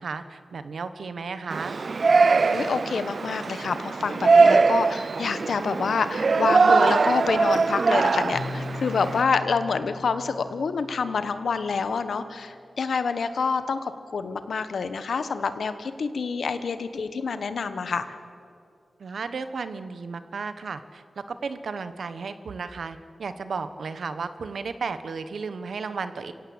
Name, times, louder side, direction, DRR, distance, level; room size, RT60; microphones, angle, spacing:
voice 1, 0.0-1.8 19.0-26.3, right 5 dB, 80° right, 11 dB, 1.2 m, -34 dB
Yell, 1.5-9.2, right 4 dB, 60° right, 0.4 m, -21 dB
voice 2, 2.5-18.0, left 5 dB, 85° left, 11 dB, 1.3 m, -27 dB
Keyboard (musical), 8.3-12.0, left 3 dB, 55° left, 1.0 m, -39 dB
27.5 x 17.0 x 8.0 m, 2.5 s
wide cardioid pair, 80°, 0 cm